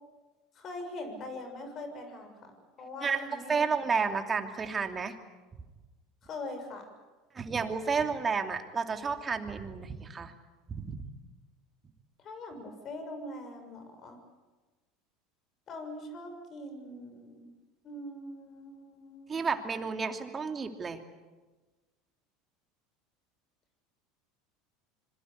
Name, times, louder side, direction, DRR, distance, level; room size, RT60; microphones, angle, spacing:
voice 1, 0.5-3.7 6.2-6.9 12.2-14.2 15.7-17.5 17.8-19.6, left 2 dB, 40° left, 7 dB, 6.9 m, -42 dB
voice 2, 3.0-5.1 7.3-10.3 10.7-11.0 19.3-21.0, right 5 dB, 25° right, 6 dB, 2.9 m, -31 dB
26.0 x 22.5 x 8.4 m, 1.2 s
hypercardioid pair, 85°, 0 cm